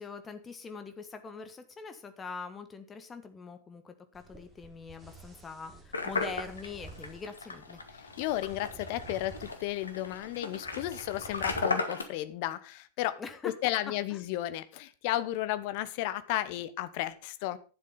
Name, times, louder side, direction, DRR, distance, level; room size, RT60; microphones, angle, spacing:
voice 1, 0.0-7.8 13.2-13.5, left 5 dB, 20° left, 9 dB, 1.5 m, -43 dB
sound 1, 4.1-11.6, right 4 dB, 10° right, 3.0 m, -51 dB
sound 2, 5.9-12.0, left 3 dB, 75° left, 1.5 m, -36 dB
voice 2, 8.2-17.6, left 14 dB, 45° left, 14 dB, 0.9 m, -33 dB
11.0 x 7.6 x 5.6 m, 0.38 s
figure-of-eight pair, 90°, 0 cm